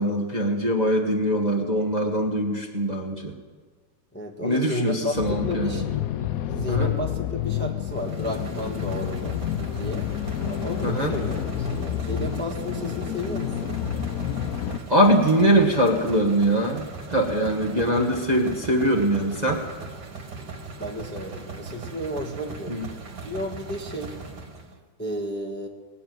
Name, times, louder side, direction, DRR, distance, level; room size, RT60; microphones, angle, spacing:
voice 1, 0.0-3.3 4.4-5.8 6.7-6.9 10.8-11.1 14.9-16.8 17.1-19.6 22.7-22.9, right 1 dB, 25° right, -1 dB, 1.2 m, -22 dB
voice 2, 4.1-5.9 6.4-9.4 9.8-10.1 10.5-13.8 20.8-22.8 23.2-24.1 25.0-25.7, equal, 5° left, 1 dB, 1.0 m, -32 dB
sound 1, 5.2-14.8, left 10 dB, 90° left, 0.7 m, -29 dB
sound 2, 7.9-24.8, right 3 dB, 55° right, 2.2 m, -39 dB
20.5 x 6.9 x 9.2 m, 1.5 s
omnidirectional pair, 2.2 m